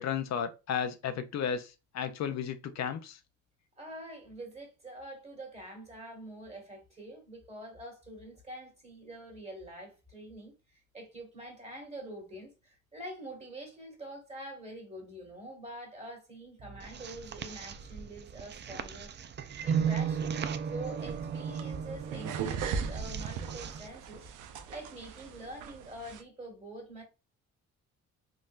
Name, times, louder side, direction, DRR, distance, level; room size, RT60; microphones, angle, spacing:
voice 1, 0.0-3.2, left 8 dB, 60° left, 0.5 m, -34 dB
voice 2, 3.8-19.1 19.6-20.3 20.7-24.3 24.7-27.0, right 1 dB, 20° right, 1.7 m, -45 dB
sound 1, 16.6-23.9, right 7 dB, 35° right, 0.4 m, -36 dB
sound 2, 21.0-26.2, right 6 dB, 85° right, 0.6 m, -39 dB
3.7 x 2.6 x 2.4 m
cardioid pair, 90°, 30 cm